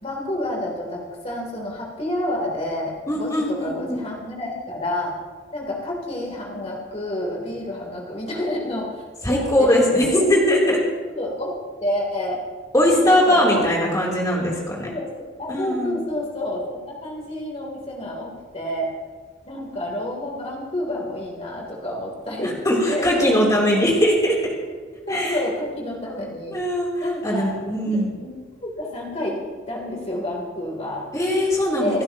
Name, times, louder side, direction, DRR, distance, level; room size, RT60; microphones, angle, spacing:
voice 1, 0.0-5.1 5.5-10.3 10.7-10.8 11.1-12.4 12.7-13.9 14.8-15.1 15.4-18.9 19.5-22.6 22.9-23.3 25.1-26.6 27.0-27.5 27.8-28.3 28.6-29.4 29.7-31.1 31.8-32.0, left 1 dB, 35° left, -2 dB, 3.4 m, -29 dB
voice 2, 3.1-4.1 9.2-10.8 12.7-14.9 15.5-16.0 22.6-24.5 25.1-25.4 26.5-26.9 27.2-28.1 31.1-32.0, left 1 dB, 20° left, -3 dB, 3.4 m, -20 dB
28.0 x 12.0 x 3.0 m, 1.5 s
head